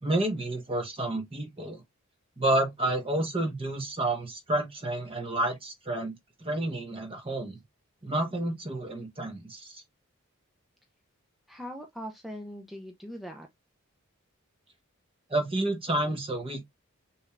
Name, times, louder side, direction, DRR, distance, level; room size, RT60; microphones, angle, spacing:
voice 1, 0.0-1.8 2.4-6.1 6.4-7.6 8.0-9.8 15.3-16.6, right 1 dB, 25° right, 1.2 m, -30 dB
voice 2, 11.5-13.5, equal, ahead, 0.5 m, -41 dB
6.1 x 3.2 x 2.4 m
head